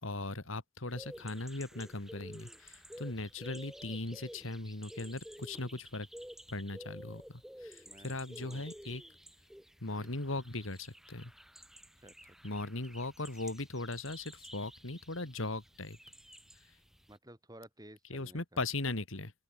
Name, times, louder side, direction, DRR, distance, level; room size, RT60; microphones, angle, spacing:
voice 1, 0.0-6.1 6.5-9.0 9.8-11.3 12.4-16.0 18.1-19.3, left 2 dB, 75° left, 2.4 m, -39 dB
sound 1, 0.9-17.2, equal, ahead, 4.6 m, -52 dB
voice 2, 7.8-8.6 9.9-10.1 12.0-12.4 17.1-18.6, right 1 dB, 20° right, 5.5 m, -55 dB
open air
head